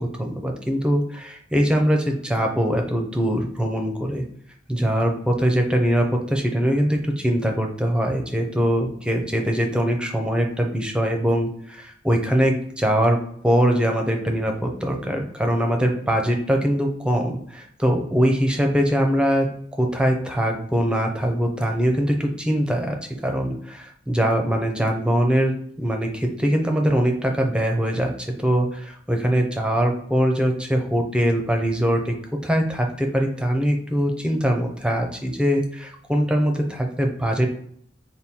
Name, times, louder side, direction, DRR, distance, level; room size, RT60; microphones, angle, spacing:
voice 1, 0.0-4.2 4.7-13.2 13.4-19.5 19.7-23.0 23.2-32.1 32.4-37.5, equal, 5° right, 3 dB, 0.5 m, -22 dB
3.6 x 2.2 x 4.2 m, 0.65 s
head